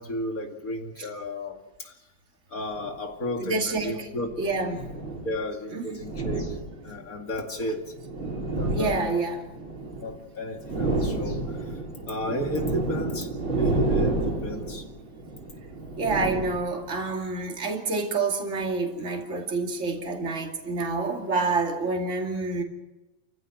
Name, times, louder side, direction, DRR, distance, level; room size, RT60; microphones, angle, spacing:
voice 1, 0.0-1.9 2.5-4.5 5.2-6.6 6.8-7.8 8.2-8.9 10.0-11.8 12.1-14.8, left 1 dB, 45° left, 2.8 m, -33 dB
sound 1, 2.7-2.9 3.9-5.4 5.9-7.1 7.8-10.2 10.5-17.0, right 2 dB, 85° right, 4.9 m, -30 dB
voice 2, 3.4-4.1 4.4-4.9 5.7-6.0 8.7-9.5 15.9-22.6, right 3 dB, 35° right, 2.8 m, -28 dB
29.5 x 15.0 x 7.7 m
omnidirectional pair, 2.2 m